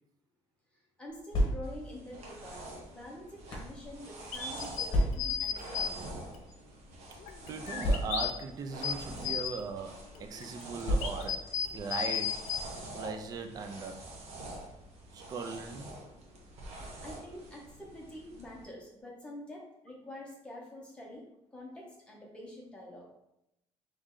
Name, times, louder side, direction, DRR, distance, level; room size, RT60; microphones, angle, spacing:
voice 1, 1.0-2.6 2.9-6.2 16.7-21.2 21.5-23.1, left 1 dB, 10° left, -3 dB, 0.9 m, -47 dB
sound 1, 1.1-2.0 2.8-3.8 4.9-5.5 6.4-6.5 6.8-6.9 7.8-8.5 9.4-9.6 10.8-11.5, equal, 40° left, 1.1 m, -31 dB
sound 2, 1.6-18.6, right 1 dB, 65° right, 1.0 m, -46 dB
sound 3, 4.3-5.9 6.3-6.4 7.2-8.3 8.7-9.6 10.1-12.6, left 8 dB, 85° left, 0.5 m, -34 dB
voice 2, 7.5-11.4 11.7-12.4 12.9-14.1 15.1-15.9, right 4 dB, 35° right, 6 dB, 0.4 m, -39 dB
3.7 x 3.2 x 3.7 m, 0.83 s
cardioid pair, 175°, 12 cm